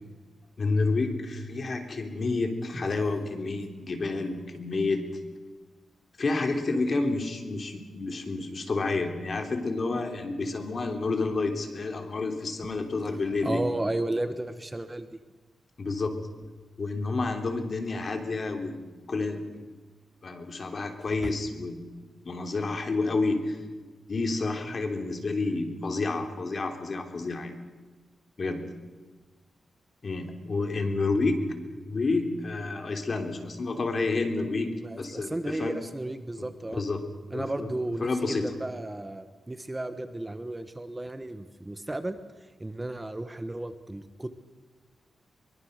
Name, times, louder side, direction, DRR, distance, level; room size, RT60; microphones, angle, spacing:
voice 1, 0.6-5.1 6.2-13.6 15.8-16.1 16.8-19.7 20.2-21.8 22.2-23.6 24.1-27.5 28.4-28.6 30.0-31.4 31.8-35.8 36.7-37.0 37.3-37.7 38.0-38.5, left 3 dB, 45° left, 5 dB, 3.3 m, -29 dB
voice 2, 13.0-15.2 21.2-21.3 34.8-36.8 37.3-42.2 42.6-44.3, right 1 dB, 15° right, 10 dB, 1.2 m, -34 dB
23.5 x 22.5 x 6.6 m, 1.3 s
wide cardioid pair, 115°, 0 cm